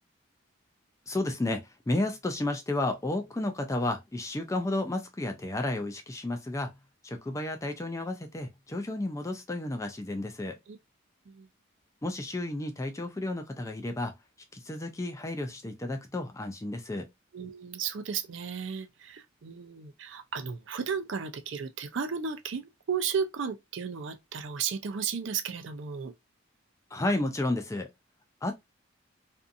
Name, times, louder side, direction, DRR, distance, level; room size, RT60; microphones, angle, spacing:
voice 1, 1.1-6.8 7.0-10.6 12.0-14.1 14.5-17.1 26.9-27.9 28.4-28.5, left 2 dB, 15° left, 0.3 m, -32 dB
voice 2, 17.3-26.1, right 6 dB, 60° right, 0.4 m, -34 dB
2.6 x 2.4 x 2.5 m
head